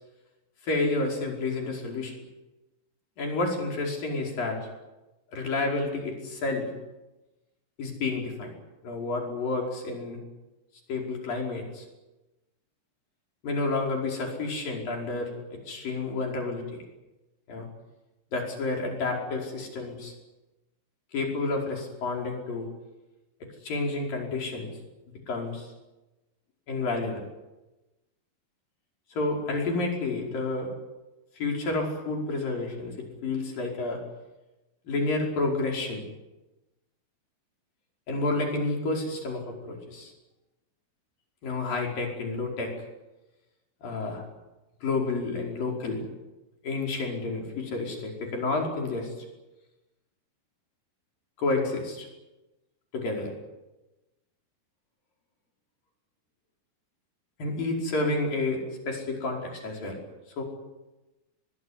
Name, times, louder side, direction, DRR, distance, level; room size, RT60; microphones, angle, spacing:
voice 1, 0.6-2.1 3.2-4.6 5.3-6.7 7.8-8.5 8.8-10.2 10.9-11.8 13.4-16.8 17.5-17.7 18.3-20.1 21.1-22.7 23.6-24.7 25.3-25.7 26.7-27.2 29.1-30.7 31.4-32.9 33.2-34.0 34.9-36.0 38.1-40.1 41.4-42.7 43.8-44.2 44.8-46.1 46.6-49.1 51.4-52.1 52.9-53.3 57.4-60.0 60.4-60.5, left 3 dB, 75° left, 1 dB, 6.8 m, -30 dB
22.0 x 22.0 x 9.9 m, 1.0 s
omnidirectional pair, 4.0 m